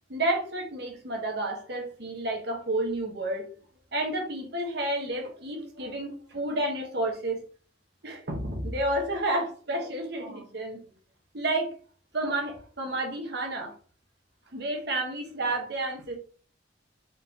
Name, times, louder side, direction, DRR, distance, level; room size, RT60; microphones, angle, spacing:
voice 1, 0.1-3.5 3.9-7.4 8.0-10.8 11.3-11.7 12.1-13.7 14.5-16.2, right 1 dB, 60° right, 1 dB, 1.2 m, -30 dB
4.0 x 3.4 x 2.8 m, 0.42 s
head